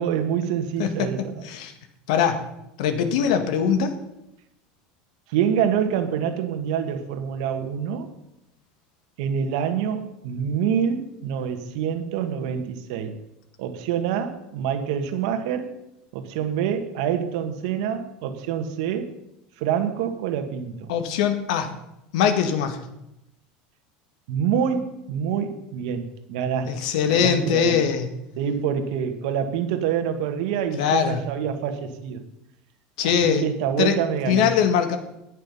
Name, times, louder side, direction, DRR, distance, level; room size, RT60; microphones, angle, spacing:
voice 1, 0.0-1.4 5.3-8.1 9.2-13.2 13.6-15.7 16.1-19.1 19.6-20.9 24.3-27.8 28.4-32.2 33.2-34.5, right 8 dB, 70° right, 8 dB, 1.7 m, -26 dB
voice 2, 0.8-1.7 2.1-2.4 2.8-3.9 20.9-21.7 22.1-22.9 26.6-28.1 30.7-31.2 33.0-33.5 33.8-34.0 34.3-35.0, left 7 dB, 80° left, 8 dB, 1.8 m, -22 dB
19.5 x 6.6 x 5.5 m, 0.85 s
supercardioid pair, 135°, 4 cm